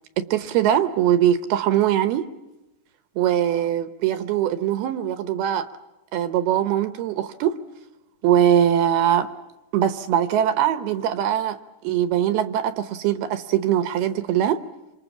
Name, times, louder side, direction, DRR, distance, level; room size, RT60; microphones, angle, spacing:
voice 1, 0.2-2.3 3.2-5.7 6.1-7.6 8.2-9.3 9.7-11.6 11.8-14.6, right 10 dB, 75° right, 11 dB, 2.8 m, -21 dB
27.0 x 27.0 x 7.2 m, 1.0 s
omnidirectional pair, 4.9 m